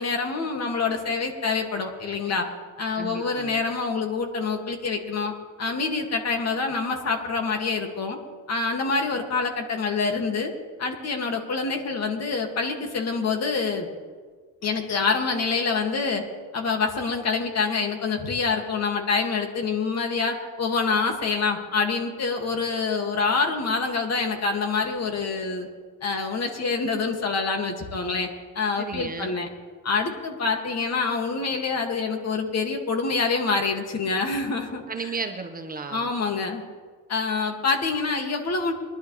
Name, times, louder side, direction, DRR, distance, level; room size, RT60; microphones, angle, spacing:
voice 1, 0.0-2.5 2.8-5.3 5.6-8.2 8.5-10.5 10.8-13.9 14.6-16.2 16.5-25.7 26.0-28.3 28.5-29.5 29.8-34.8 35.9-36.6 37.1-38.7, left 4 dB, 50° left, 3 dB, 2.3 m, -26 dB
voice 2, 3.0-3.6 28.8-29.3 34.9-36.1, right 4 dB, 25° right, 4 dB, 1.3 m, -34 dB
23.5 x 11.5 x 3.4 m, 1.5 s
cardioid pair, 100°, 32 cm